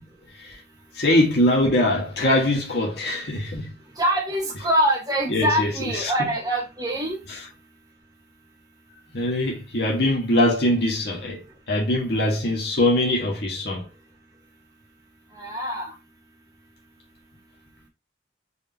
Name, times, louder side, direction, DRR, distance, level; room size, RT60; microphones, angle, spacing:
voice 1, 0.9-3.7 5.3-6.1 7.3-7.4 9.1-13.9, left 1 dB, 60° left, 1.6 m, -22 dB
voice 2, 4.0-7.2 15.3-15.9, right 1 dB, 20° right, 1.4 m, -24 dB
4.7 x 3.6 x 2.8 m
head